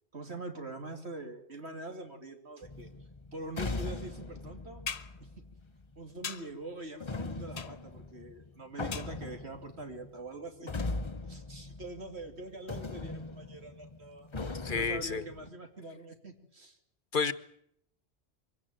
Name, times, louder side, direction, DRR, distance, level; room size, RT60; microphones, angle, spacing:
voice 1, 0.1-2.9 3.3-4.8 5.2-5.3 6.0-10.9 11.3-16.8, right 2 dB, 90° right, 5 dB, 3.2 m, -44 dB
sound 1, 2.6-6.0 7.0-12.4 12.7-15.5, left 3 dB, 30° left, 1.0 m, -40 dB
sound 2, 4.9-5.2 6.2-6.6 7.6-8.0 8.9-9.4 10.8-10.9, left 6 dB, 80° left, 1.4 m, -40 dB
voice 2, 14.6-15.2 17.1-17.3, left 5 dB, 55° left, 15 dB, 1.3 m, -30 dB
23.5 x 17.0 x 9.0 m, 0.71 s
omnidirectional pair, 1.1 m